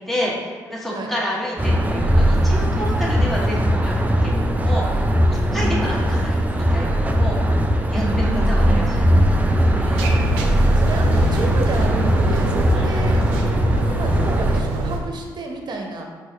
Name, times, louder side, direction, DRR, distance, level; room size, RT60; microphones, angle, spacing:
voice 1, 0.1-5.0 5.5-7.6 7.9-10.0 12.7-13.0, equal, ahead, -5 dB, 1.4 m, -30 dB
sound 1, 1.6-14.6, equal, 15° right, 0.5 m, -19 dB
voice 2, 7.9-9.4 10.6-13.2 13.9-16.0, right 2 dB, 50° right, 2 dB, 0.7 m, -31 dB
sound 2, 10.0-15.0, right 2 dB, 85° right, 0.5 m, -25 dB
4.5 x 2.6 x 4.5 m, 1.5 s
hypercardioid pair, 50°, 9 cm